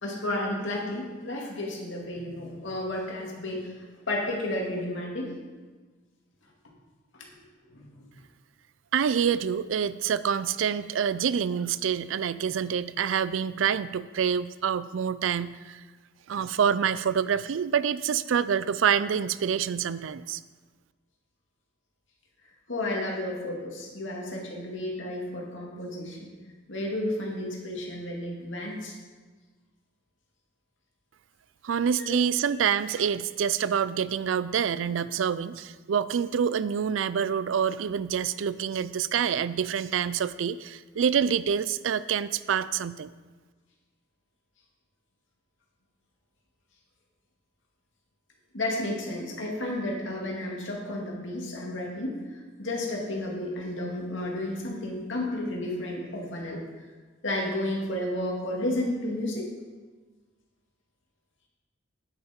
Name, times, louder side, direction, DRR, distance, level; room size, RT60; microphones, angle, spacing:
voice 1, 0.0-5.3 7.1-7.3 7.7-8.1 22.7-26.3 26.7-28.9 32.0-32.2 48.5-56.6 57.2-59.5, left 1 dB, 75° left, -2 dB, 2.3 m, -32 dB
voice 2, 8.9-15.8 16.3-20.4 31.6-43.1, right 7 dB, 80° right, 16 dB, 0.4 m, -27 dB
9.5 x 8.7 x 4.4 m, 1.3 s
head